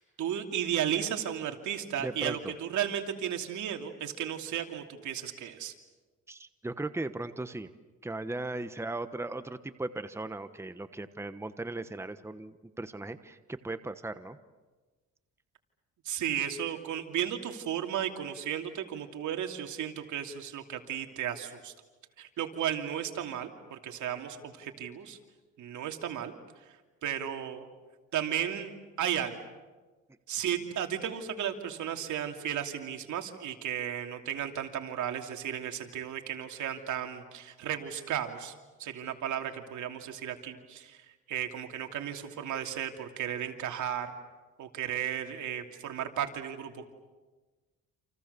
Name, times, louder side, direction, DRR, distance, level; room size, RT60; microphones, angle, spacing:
voice 1, 0.0-5.7 16.0-21.7 22.2-25.2 25.6-26.3 27.0-27.7 28.1-29.4 30.3-38.5 38.8-44.1 44.6-46.9, right 9 dB, 75° right, 4 dB, 2.9 m, -34 dB
voice 2, 2.0-2.5 6.3-7.7 8.0-14.4, right 2 dB, 10° right, 11 dB, 1.2 m, -37 dB
29.0 x 28.0 x 6.9 m, 1.3 s
cardioid pair, 90°, 30 cm